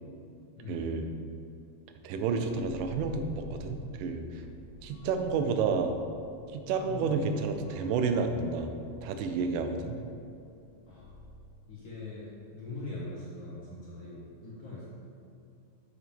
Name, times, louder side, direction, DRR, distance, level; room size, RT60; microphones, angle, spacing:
voice 1, 0.7-1.1 2.0-4.4 4.8-5.9 6.5-8.7 9.0-10.0, right 5 dB, 85° right, 6 dB, 2.2 m, -30 dB
sound 1, 2.4-12.1, left 3 dB, 85° left, 1.5 m, -50 dB
voice 2, 6.8-7.3 10.9-11.0 11.7-14.9, left 2 dB, 50° left, -8 dB, 1.5 m, -41 dB
7.2 x 6.1 x 3.5 m, 2.5 s
omnidirectional pair, 3.7 m